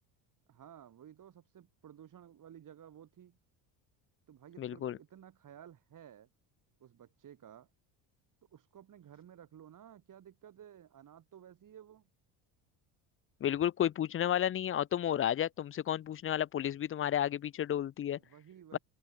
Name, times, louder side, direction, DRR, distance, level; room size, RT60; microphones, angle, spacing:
voice 1, 0.5-3.4 4.3-6.3 6.8-7.7 8.5-12.1 18.2-18.8, right 10 dB, 45° right, 5.5 m, -55 dB
voice 2, 4.6-5.0 13.4-18.2 18.7-18.8, left 10 dB, 30° left, 0.5 m, -32 dB
supercardioid pair, 105°, 45 cm